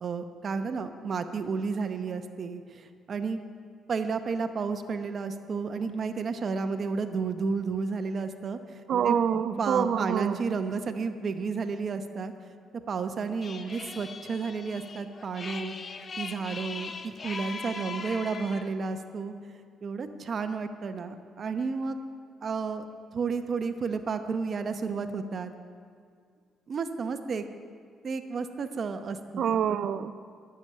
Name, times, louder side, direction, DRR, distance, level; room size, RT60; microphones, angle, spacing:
voice 1, 0.0-3.4 3.9-8.6 9.0-9.2 9.6-12.3 12.9-15.7 16.2-16.9 17.2-19.3 19.8-21.9 22.4-22.8 23.1-25.5 26.7-27.4 28.0-29.5, right 5 dB, 50° right, 8 dB, 0.8 m, -32 dB
voice 2, 8.9-10.4 29.4-30.1, right 8 dB, 65° right, 13 dB, 0.5 m, -26 dB
sound 1, 13.4-18.7, left 4 dB, 40° left, 0.7 m, -40 dB
10.5 x 7.0 x 9.1 m, 2.1 s
cardioid pair, 90°, 0 cm